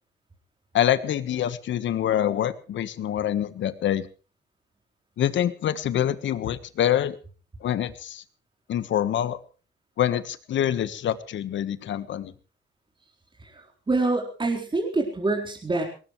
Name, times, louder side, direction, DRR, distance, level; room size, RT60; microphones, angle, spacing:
voice 1, 0.7-4.1 5.2-7.2 7.6-8.2 8.7-9.4 10.0-12.3, left 10 dB, 70° left, 13 dB, 1.4 m, -25 dB
voice 2, 13.4-15.8, right 2 dB, 25° right, 1 dB, 4.2 m, -26 dB
19.5 x 19.0 x 3.3 m, 0.36 s
cardioid pair, 90°, 20 cm